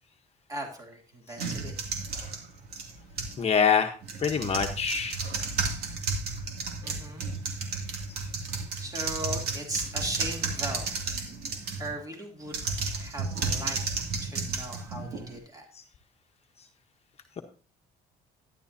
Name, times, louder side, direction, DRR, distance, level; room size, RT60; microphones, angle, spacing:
voice 1, 0.5-1.7 6.8-7.3 8.8-11.0 11.8-12.6 12.9-13.8 14.2-15.7, right 1 dB, 20° right, 1 dB, 3.0 m, -38 dB
sound 1, 1.4-3.4 4.0-11.9 12.5-15.4, right 4 dB, 65° right, 2.6 m, -33 dB
voice 2, 3.4-3.9 4.2-5.2, left 6 dB, 40° left, 4 dB, 1.1 m, -24 dB
12.0 x 11.0 x 2.8 m, 0.37 s
cardioid pair, 110°, 17 cm